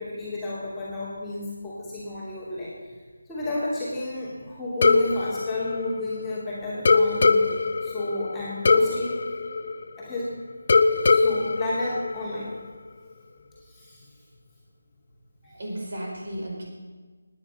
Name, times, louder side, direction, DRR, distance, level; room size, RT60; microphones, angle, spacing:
voice 1, 0.0-2.9 3.3-7.5 7.8-9.2 10.0-10.3 10.9-12.5 13.7-14.1, left 2 dB, 5° left, -9 dB, 2.8 m, -32 dB
sound 1, 4.8-6.4 6.9-10.2 10.7-12.7, left 4 dB, 50° left, 0.8 m, -22 dB
voice 2, 15.4-16.6, right 1 dB, 55° right, -2 dB, 5.1 m, -34 dB
17.0 x 10.0 x 5.6 m, 1.4 s
figure-of-eight pair, 170°, 0 cm